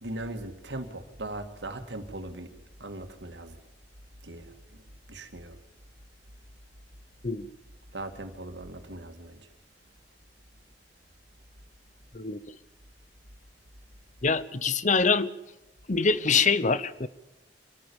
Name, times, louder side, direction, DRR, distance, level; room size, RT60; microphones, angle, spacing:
voice 1, 0.0-2.5 2.8-3.6 4.2-4.5 5.1-5.6 7.9-9.4, right 1 dB, 85° right, 2.4 m, -39 dB
voice 2, 14.2-15.3 15.9-17.1, left 4 dB, 45° left, 0.9 m, -24 dB
25.5 x 14.5 x 7.2 m
head